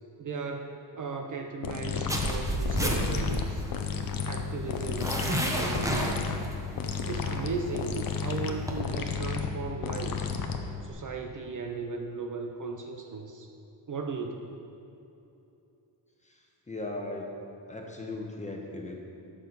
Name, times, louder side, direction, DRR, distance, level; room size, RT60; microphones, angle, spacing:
voice 1, 0.2-3.6 4.2-6.5 7.1-10.4 10.8-13.5 13.9-14.5, right 4 dB, 45° right, 3 dB, 0.7 m, -36 dB
sound 1, 1.6-10.9, left 6 dB, 50° left, 0.8 m, -33 dB
zipper and hoodie clothes rustle, 2.1-8.8, equal, 5° right, 1.0 m, -32 dB
voice 2, 16.2-17.3 17.7-19.0, left 2 dB, 15° left, 0 dB, 1.1 m, -38 dB
11.5 x 7.1 x 4.0 m, 2.8 s
cardioid pair, 115°, 44 cm